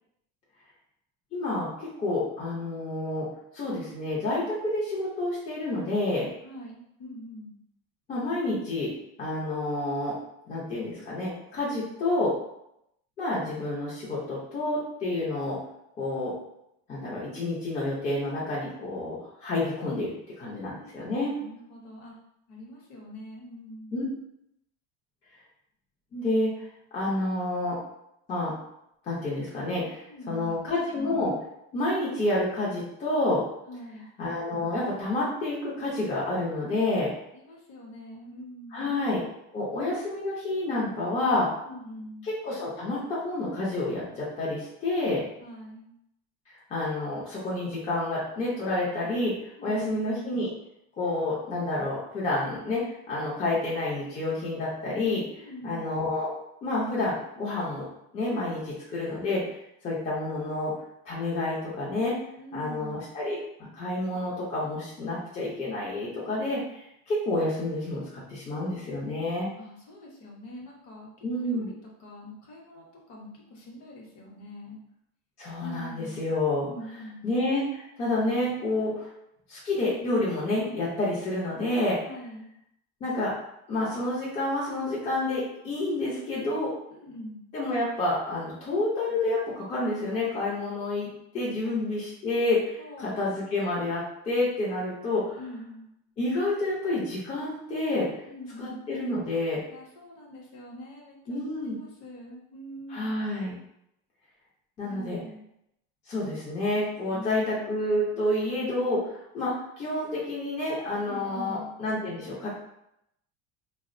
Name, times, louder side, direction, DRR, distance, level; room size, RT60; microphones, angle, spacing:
voice 1, 1.3-3.3 3.5-6.3 8.1-8.9 9.2-10.2 10.5-12.3 13.2-15.6 16.0-16.3 16.9-21.3 23.9-24.0 26.1-26.5 26.9-27.8 28.3-28.5 29.1-31.3 31.7-33.4 34.2-37.1 38.7-39.2 39.5-41.5 42.2-45.2 46.7-50.5 51.0-56.3 56.6-57.8 58.1-59.4 59.8-60.7 61.0-62.2 62.5-63.4 63.7-69.5 71.2-71.7 75.4-76.7 77.2-79.1 79.5-82.0 83.0-83.3 83.7-86.7 87.5-91.1 91.3-95.4 96.2-98.1 98.6-99.6 101.3-101.8 102.9-103.5 104.8-105.2 106.1-112.6, left 2 dB, 20° left, -7 dB, 0.4 m, -29 dB
voice 2, 6.4-7.5 20.4-21.0 21.4-22.2 22.5-24.1 30.1-30.6 33.7-34.1 37.3-38.9 41.7-42.3 45.4-45.9 49.6-49.9 55.4-55.9 62.4-63.0 69.6-71.7 72.0-74.8 75.6-76.2 76.7-77.2 82.0-82.5 86.9-87.4 91.6-91.7 92.8-93.2 95.4-95.9 98.3-98.8 99.7-103.1 104.8-105.4 107.1-107.7 111.1-111.7, left 1 dB, 45° left, -2 dB, 0.8 m, -44 dB
3.3 x 2.0 x 2.4 m, 0.79 s
cardioid pair, 170°, 32 cm